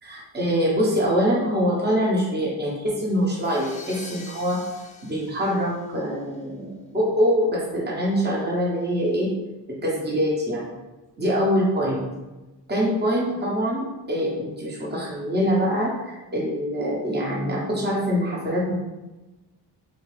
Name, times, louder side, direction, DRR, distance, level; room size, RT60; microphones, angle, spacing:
voice 1, 0.0-4.6 5.0-9.3 9.7-10.6 11.2-12.1 12.7-18.7, equal, 25° right, -4 dB, 0.9 m, -24 dB
sound 1, 3.1-6.3, left 2 dB, 20° left, 0.5 m, -43 dB
2.8 x 2.7 x 3.2 m, 1.1 s
cardioid pair, 65°, 43 cm